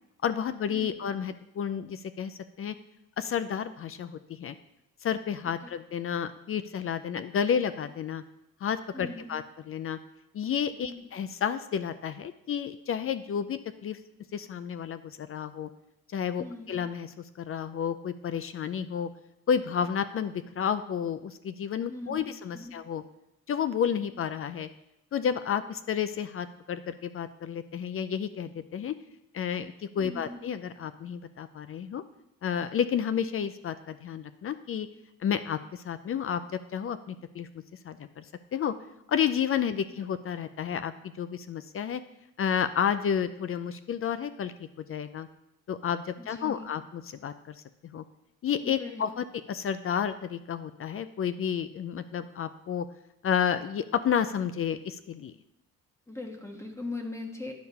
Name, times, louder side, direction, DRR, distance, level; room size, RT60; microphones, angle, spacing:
voice 1, 0.2-2.8 3.2-4.5 5.0-8.2 8.6-10.0 10.3-14.0 14.3-15.7 16.1-17.1 17.4-19.1 19.5-23.0 23.5-24.7 25.1-29.0 29.3-32.0 32.4-34.9 35.2-36.4 36.7-37.5 37.8-38.2 38.5-38.7 39.1-42.0 42.4-45.3 45.7-47.5 47.8-48.0 48.4-52.9 53.2-55.3, left 8 dB, 45° left, 12 dB, 0.5 m, -31 dB
voice 2, 8.9-9.3 10.8-11.1 16.4-16.7 21.9-22.3 22.5-22.7 30.0-30.4 39.7-39.8 46.2-46.7 48.6-49.0 56.1-57.5, left 2 dB, 10° left, 3 dB, 1.3 m, -40 dB
10.5 x 4.6 x 5.5 m, 0.84 s
cardioid pair, 90°, 30 cm